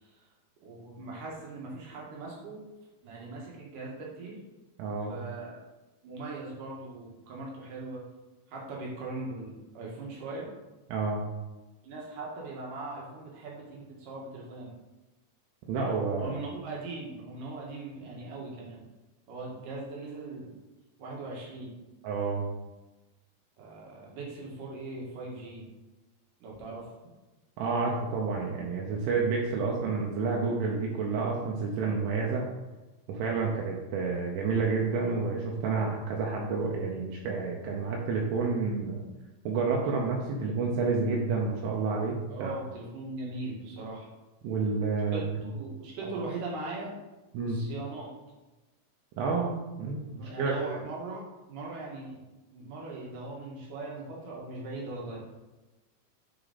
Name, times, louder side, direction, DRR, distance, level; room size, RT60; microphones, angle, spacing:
voice 1, 0.6-2.6 3.0-4.4 5.1-5.6 6.0-8.0 8.5-10.5 11.8-14.7 16.2-18.8 19.3-20.5 21.0-21.7 23.6-25.6 26.4-26.9 42.3-44.1 45.1-46.9 47.4-48.1 50.1-52.2 52.5-55.2, right 2 dB, 60° right, -3 dB, 2.4 m, -40 dB
voice 2, 4.8-5.1 10.9-11.2 15.7-16.3 22.0-22.5 27.6-32.4 33.1-39.0 39.5-42.5 44.4-45.2 46.0-46.1 47.3-47.6 49.2-49.5 49.8-50.8, right 4 dB, 80° right, -2 dB, 3.2 m, -29 dB
10.0 x 4.7 x 4.1 m, 1.1 s
omnidirectional pair, 5.7 m